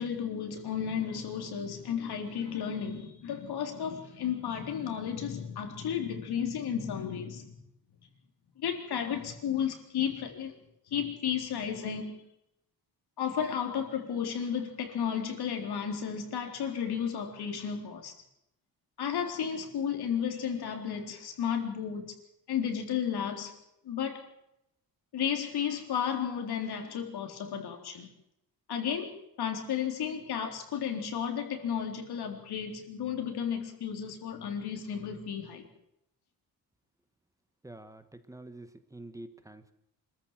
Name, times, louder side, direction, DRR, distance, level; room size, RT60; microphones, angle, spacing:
voice 1, 0.0-7.5 8.6-10.6 10.9-12.2 13.2-18.2 19.0-22.1 22.5-23.5 23.8-24.3 25.1-28.1 28.7-35.7, left 8 dB, 80° left, 4.0 m, -33 dB
voice 2, 37.6-39.7, right 2 dB, 10° right, 1.3 m, -47 dB
26.0 x 14.0 x 7.5 m
wide cardioid pair, 180°, 38 cm